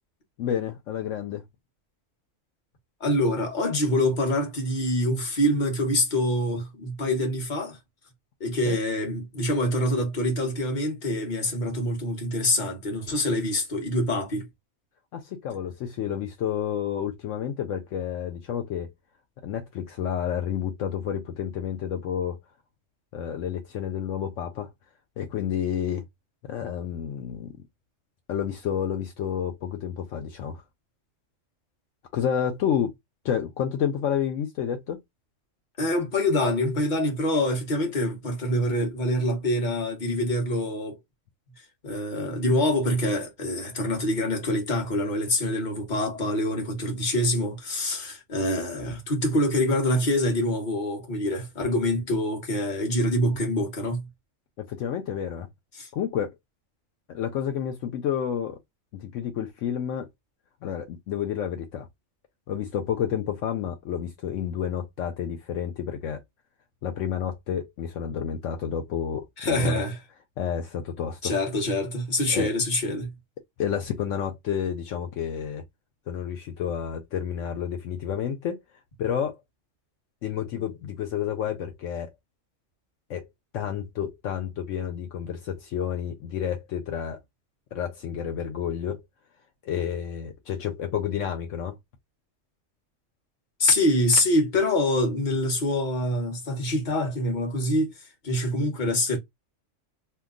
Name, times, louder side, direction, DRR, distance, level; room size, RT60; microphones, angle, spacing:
voice 1, 0.4-1.5 8.7-8.8 15.1-18.9 19.4-22.4 23.1-24.7 25.2-26.1 26.4-27.5 28.3-30.6 32.1-32.9 33.2-35.0 54.6-55.5 55.9-56.3 57.1-58.6 58.9-60.1 60.6-61.9 62.5-66.2 66.8-69.8 70.4-71.3 72.3-72.5 73.6-75.6 76.1-78.6 79.0-79.4 80.2-82.1 83.1-83.3 83.5-87.2 87.7-89.0 89.6-91.8, left 9 dB, 75° left, 1.0 m, -30 dB
voice 2, 3.0-7.8 8.4-14.5 35.8-41.0 41.8-54.1 55.8-55.9 69.4-70.0 71.2-73.2 93.6-97.9 98.2-99.2, left 1 dB, 40° left, 1.2 m, -25 dB
2.8 x 2.2 x 3.6 m
omnidirectional pair, 1.3 m